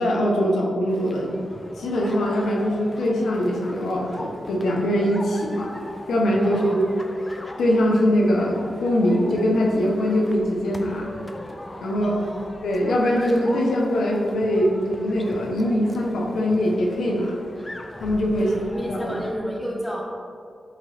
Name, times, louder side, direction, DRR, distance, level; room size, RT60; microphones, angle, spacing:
voice 1, 0.0-1.3 1.8-5.7 6.1-6.8 7.6-11.1 11.8-12.2 12.6-17.4 18.0-18.5 18.9-19.2, equal, 90° left, -1 dB, 0.8 m, -22 dB
sound 1, 0.9-19.4, left 1 dB, 30° left, 0.7 m, -40 dB
voice 2, 6.4-6.8 12.0-12.5 18.4-20.0, equal, 10° left, -3 dB, 0.9 m, -31 dB
8.3 x 3.0 x 4.2 m, 2.4 s
cardioid pair, 45°, 0 cm